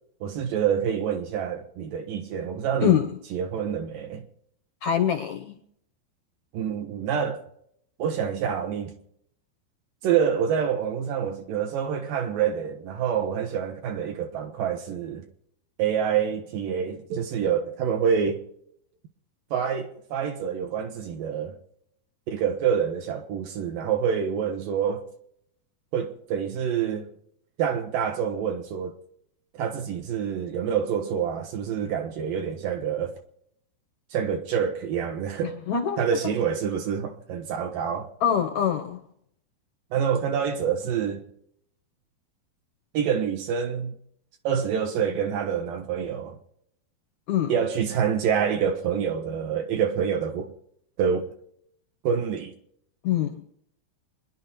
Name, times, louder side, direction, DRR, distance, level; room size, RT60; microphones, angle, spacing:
voice 1, 0.2-3.0 3.3-4.2 6.5-7.4 8.0-8.9 10.0-15.2 15.8-18.4 19.5-21.6 22.3-25.1 25.9-27.1 27.6-29.0 29.5-33.2 34.1-35.6 36.0-38.1 39.9-41.2 42.9-43.9 44.4-46.4 47.5-50.5 51.0-51.3 52.0-52.5, right 7 dB, 70° right, 2.5 m, -27 dB
voice 2, 2.8-3.2 4.8-5.6 35.4-36.0 38.2-39.0 47.3-47.6 53.0-53.4, left 9 dB, 70° left, 1.8 m, -24 dB
26.0 x 10.5 x 4.3 m
omnidirectional pair, 4.6 m